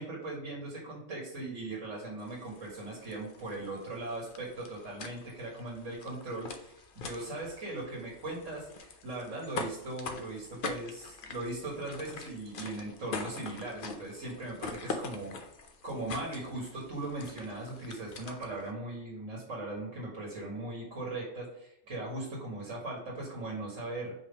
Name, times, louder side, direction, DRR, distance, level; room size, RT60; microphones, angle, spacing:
voice 1, 0.0-15.3 15.8-24.1, right 2 dB, 80° right, -3 dB, 2.1 m, -39 dB
sound 1, 2.2-18.7, left 4 dB, 50° left, 0.7 m, -44 dB
5.2 x 3.6 x 5.3 m, 0.84 s
omnidirectional pair, 1.3 m